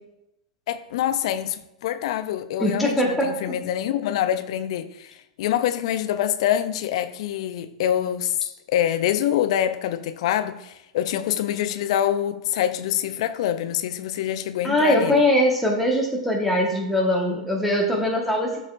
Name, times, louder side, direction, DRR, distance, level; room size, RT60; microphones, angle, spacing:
voice 1, 0.7-8.4 8.7-15.2, left 11 dB, 60° left, 0.5 m, -25 dB
voice 2, 2.6-3.3 14.6-18.6, left 1 dB, ahead, 1.4 m, -21 dB
12.5 x 4.2 x 2.6 m
hypercardioid pair, 95°, 3 cm